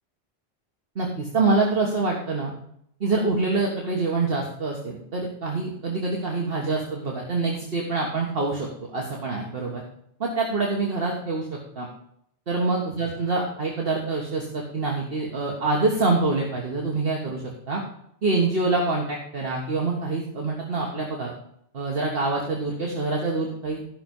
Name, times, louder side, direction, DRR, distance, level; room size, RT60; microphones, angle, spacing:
voice 1, 0.9-2.5 3.0-8.7 8.9-9.8 10.2-11.9 12.5-17.8 18.2-21.3 21.7-24.0, right 3 dB, 55° right, -2 dB, 1.7 m, -26 dB
12.5 x 6.0 x 5.4 m, 0.71 s
omnidirectional pair, 1.2 m